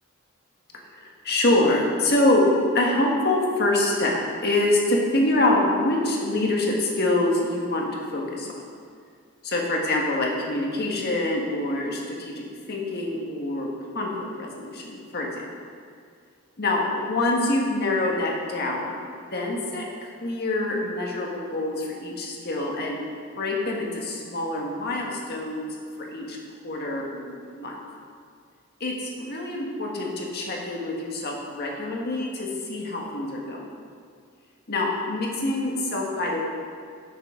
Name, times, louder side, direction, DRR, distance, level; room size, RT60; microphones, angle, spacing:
voice 1, 0.9-2.5 2.7-8.6 9.4-13.7 13.9-15.5 16.6-19.0 19.3-19.9 20.2-23.0 23.4-25.8 26.1-26.4 26.6-27.7 28.8-33.6 34.7-36.4, left 2 dB, 50° left, -1 dB, 1.6 m, -25 dB
11.5 x 8.0 x 3.8 m, 2.2 s
head